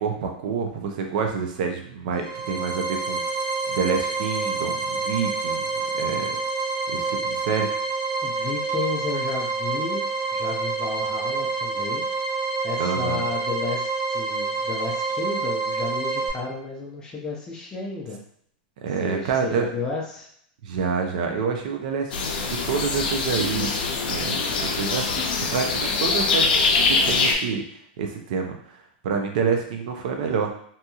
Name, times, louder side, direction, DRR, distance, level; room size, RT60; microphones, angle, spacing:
voice 1, 0.0-3.2 3.7-6.4 6.9-7.7 12.8-13.2 18.8-19.7 20.6-23.7 24.0-25.2 25.5-26.5 26.9-27.6 28.0-30.5, right 6 dB, 55° right, 3 dB, 0.5 m, -27 dB
sound 1, 2.1-16.3, right 4 dB, 15° right, 0.8 m, -27 dB
voice 2, 8.2-10.0 10.3-12.0 12.6-18.2 19.0-20.3, left 4 dB, 15° left, -2 dB, 0.5 m, -32 dB
sound 2, 22.1-27.3, left 4 dB, 80° left, 0.5 m, -23 dB
2.8 x 2.7 x 2.3 m, 0.65 s
supercardioid pair, 170°, 5 cm